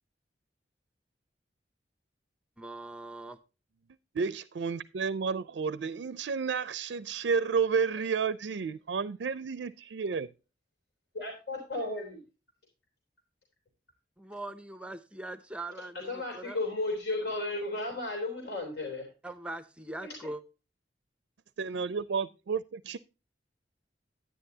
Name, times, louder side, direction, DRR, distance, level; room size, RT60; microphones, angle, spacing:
voice 1, 2.6-3.4 14.2-16.6 19.2-20.4, right 2 dB, 5° right, 0.6 m, -41 dB
voice 2, 4.1-10.3 21.6-23.0, right 5 dB, 75° right, 0.4 m, -31 dB
voice 3, 11.1-12.2 16.1-19.1, left 2 dB, 70° left, 3.2 m, -34 dB
10.0 x 9.9 x 2.7 m
head